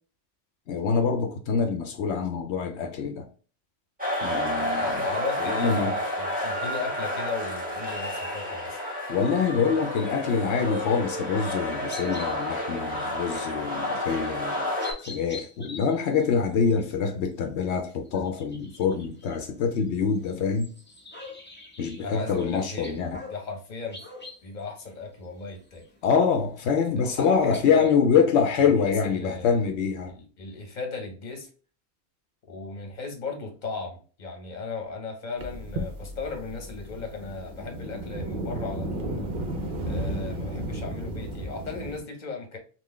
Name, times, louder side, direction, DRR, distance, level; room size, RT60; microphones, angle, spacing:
voice 1, 0.7-3.3 4.2-5.0 5.4-5.9 9.1-14.7 15.1-20.7 21.8-23.2 26.0-30.1, left 6 dB, 85° left, 0.9 m, -25 dB
sound 1, 4.0-14.9, left 1 dB, 10° right, 1.4 m, -30 dB
voice 2, 4.8-8.8 22.0-23.0 23.3-24.0 24.4-25.8 26.8-27.9 28.6-29.6 30.1-31.5 32.5-39.2 39.8-42.6, left 4 dB, 45° left, 1.1 m, -36 dB
sound 2, 11.4-12.8 13.1-13.6 13.9-14.1 14.6-23.4 23.9-27.9, left 3 dB, 10° left, 0.6 m, -46 dB
sound 3, 35.4-42.0, right 1 dB, 55° right, 0.8 m, -34 dB
3.8 x 2.3 x 3.0 m
omnidirectional pair, 1.1 m